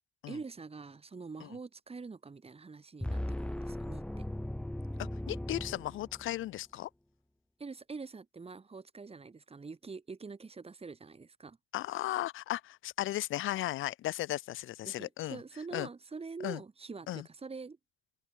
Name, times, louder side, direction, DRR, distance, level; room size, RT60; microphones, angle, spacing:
voice 1, 0.3-4.3 7.6-11.6 14.8-17.8, right 4 dB, 30° right, 5.6 m, -45 dB
sound 1, 3.0-6.5, left 1 dB, 5° left, 1.1 m, -38 dB
voice 2, 5.0-6.9 11.7-15.4 15.7-15.9 16.4-16.6 17.1-17.2, left 15 dB, 85° left, 2.8 m, -36 dB
open air
cardioid pair, 90°, 20 cm